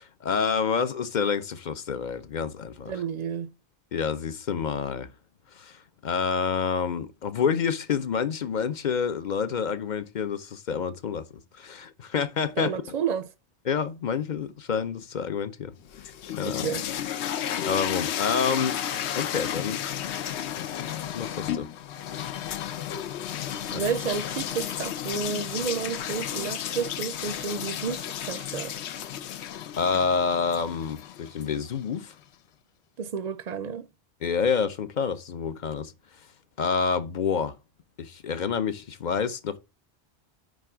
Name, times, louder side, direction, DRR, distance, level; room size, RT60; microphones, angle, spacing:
voice 1, 0.0-2.9 3.9-5.1 5.5-13.0 13.7-16.1 16.4-16.7 17.2-18.8 19.2-19.8 20.2-21.7 23.7-23.8 29.8-32.1 34.2-35.9 36.6-37.6 38.0-39.6, left 6 dB, 50° left, 0.7 m, -28 dB
voice 2, 2.9-3.5 12.6-13.3 16.5-16.9 23.7-28.7 33.0-33.9, right 6 dB, 50° right, 0.5 m, -31 dB
sound 1, 15.8-31.9, left 10 dB, 90° left, 0.9 m, -33 dB
9.1 x 3.4 x 4.9 m
omnidirectional pair, 1.1 m